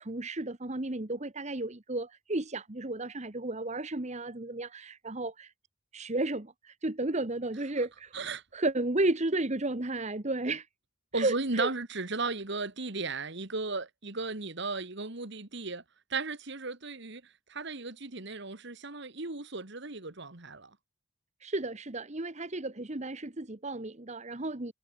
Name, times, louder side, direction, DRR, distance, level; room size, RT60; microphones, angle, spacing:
voice 1, 0.0-5.5 5.9-8.1 8.5-10.7 11.1-11.7 21.4-24.7, right 2 dB, 35° right, 1.3 m, -33 dB
voice 2, 11.1-15.8 16.1-17.2 17.5-20.7, right 3 dB, 55° right, 2.1 m, -35 dB
head